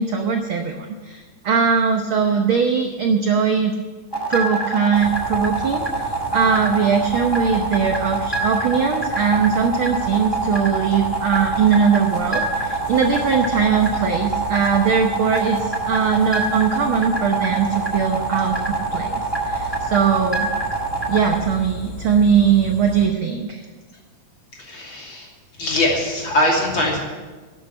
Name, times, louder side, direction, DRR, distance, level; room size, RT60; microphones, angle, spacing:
voice 1, 0.0-3.7 4.3-20.5 21.1-23.7, right 6 dB, 70° right, 4 dB, 1.2 m, -20 dB
sound 1, 4.1-21.4, right 3 dB, 15° left, 0.8 m, -25 dB
sound 2, 4.9-23.1, left 1 dB, 80° left, 3.3 m, -35 dB
voice 2, 24.6-25.3 25.6-27.0, left 1 dB, 40° left, -2 dB, 3.3 m, -21 dB
12.0 x 8.3 x 9.7 m, 1.4 s
omnidirectional pair, 3.5 m